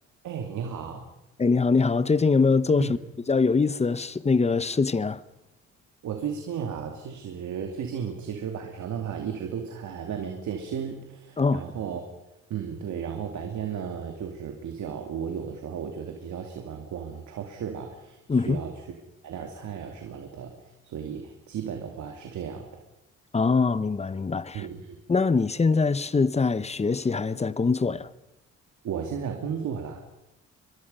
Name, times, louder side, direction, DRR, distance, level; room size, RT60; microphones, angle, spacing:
voice 1, 0.2-1.1 2.8-3.0 6.0-12.0 12.5-18.7 19.2-20.5 20.8-22.8 24.5-25.0 28.8-30.0, right 7 dB, 70° right, 2.5 m, -34 dB
voice 2, 1.4-3.0 3.3-5.2 11.4-11.6 18.3-18.6 23.3-24.7 25.1-28.1, left 4 dB, 20° left, 0.9 m, -23 dB
24.0 x 22.0 x 5.5 m
cardioid pair, 90°, 30 cm